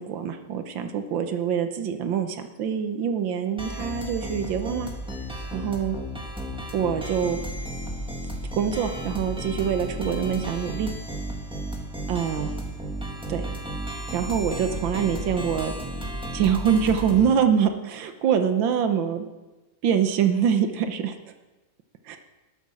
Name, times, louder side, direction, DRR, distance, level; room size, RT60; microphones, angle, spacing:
voice 1, 0.1-4.9 5.5-6.0 6.7-7.4 8.5-10.9 12.1-12.5 13.3-13.4 14.1-15.7 16.3-19.3 19.8-21.2 22.1-22.2, right 8 dB, 85° right, 7 dB, 1.7 m, -24 dB
sound 1, 3.6-17.3, equal, 5° right, 1.8 m, -33 dB
12.5 x 12.5 x 6.5 m, 1.1 s
omnidirectional pair, 2.0 m